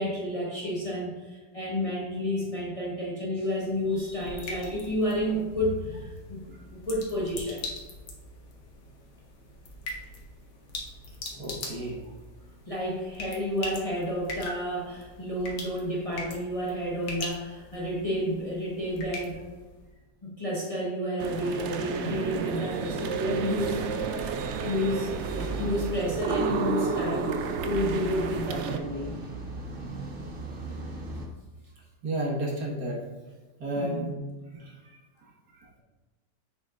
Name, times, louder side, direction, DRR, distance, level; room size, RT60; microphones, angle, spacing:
voice 1, 0.0-6.4 6.7-7.7 12.7-19.4 20.2-27.4 27.6-29.2 33.8-34.1, equal, 20° left, -5 dB, 1.3 m, -31 dB
sound 1, 3.5-19.9, left 2 dB, 80° left, 1.8 m, -42 dB
voice 2, 11.4-12.0 32.0-33.0 33.6-34.2 34.5-34.7 35.2-35.3, right 1 dB, 70° right, -3 dB, 2.2 m, -31 dB
sound 2, 21.2-28.8, right 5 dB, 90° right, 0.6 m, -31 dB
sound 3, 23.5-31.3, right 2 dB, 40° right, 0.9 m, -39 dB
7.5 x 6.2 x 2.5 m, 1.3 s
omnidirectional pair, 1.8 m